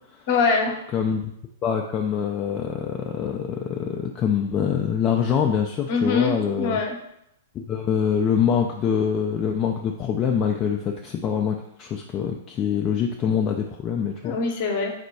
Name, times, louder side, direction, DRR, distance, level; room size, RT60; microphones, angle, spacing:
voice 1, 0.3-0.8 5.9-7.0 14.2-14.9, left 4 dB, 45° left, 2 dB, 0.8 m, -23 dB
voice 2, 0.9-1.3 1.6-6.8 7.5-14.4, left 7 dB, 25° left, 2 dB, 0.3 m, -24 dB
4.2 x 2.2 x 4.3 m, 0.76 s
figure-of-eight pair, 105°, 0 cm